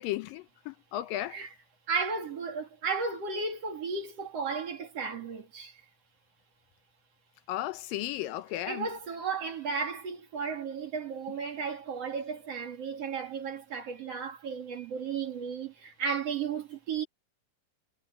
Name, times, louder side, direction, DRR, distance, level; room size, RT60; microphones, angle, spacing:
voice 1, 0.0-1.4 7.5-8.9, left 14 dB, 80° left, 2.5 m, -35 dB
voice 2, 1.9-5.8 8.7-17.0, right 5 dB, 45° right, 3.2 m, -34 dB
omnidirectional pair, 4.1 m